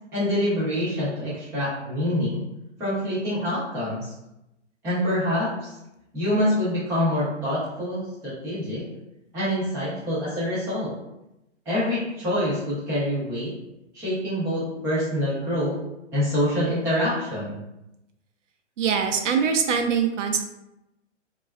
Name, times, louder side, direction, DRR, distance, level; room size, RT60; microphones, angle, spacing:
voice 1, 0.1-2.4 2.8-4.1 4.8-5.8 6.1-8.8 9.3-10.9 11.7-13.5 13.9-15.8 16.1-17.6, equal, 5° right, -10 dB, 0.4 m, -26 dB
voice 2, 18.8-20.4, right 6 dB, 80° right, 5 dB, 0.6 m, -23 dB
3.3 x 2.3 x 2.2 m, 0.91 s
hypercardioid pair, 145°, 36 cm